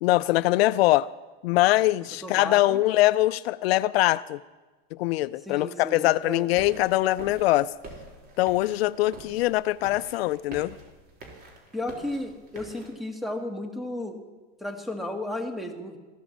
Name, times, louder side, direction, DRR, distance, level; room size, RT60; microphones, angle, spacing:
voice 1, 0.0-1.1 1.4-4.4 4.9-7.7 8.4-10.7, left 17 dB, 75° left, 17 dB, 0.5 m, -23 dB
voice 2, 2.2-2.8 5.4-6.5 11.7-14.2 14.6-16.0, left 1 dB, ahead, 4 dB, 2.0 m, -34 dB
sound 1, 6.6-12.9, right 3 dB, 30° right, 3.8 m, -46 dB
15.5 x 12.0 x 7.4 m, 1.3 s
supercardioid pair, 130°, 31 cm